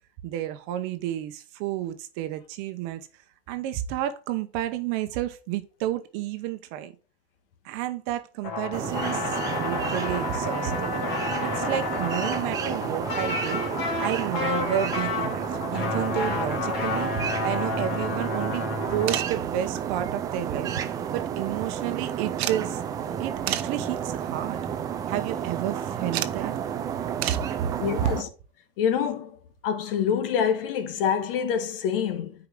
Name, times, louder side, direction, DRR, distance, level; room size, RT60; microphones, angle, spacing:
voice 1, 0.2-3.1 3.5-6.9 7.6-11.0 11.4-13.6 14.0-17.1 17.4-18.6 18.9-20.7 21.1-22.8 23.2-24.6 25.1-26.5 27.3-27.7 28.0-28.1, right 12 dB, 40° right, 0.9 m, -31 dB
sound 1, 8.4-19.2, left 4 dB, 45° left, 3.6 m, -30 dB
sound 2, 8.7-28.2, right 8 dB, 10° right, 0.3 m, -31 dB
sound 3, 19.1-19.4 20.6-21.3 21.5-21.6 22.4-22.6 23.5-23.8 24.5-24.7 26.1-26.4 27.2-27.5 29.2-29.3 30.6-30.7 30.9-31.0, right 12 dB, 85° right, 0.8 m, -31 dB
voice 2, 27.8-28.3 28.8-29.3 29.6-32.3, left 8 dB, 65° left, 1.5 m, -26 dB
9.3 x 4.9 x 3.7 m
supercardioid pair, 155°, 31 cm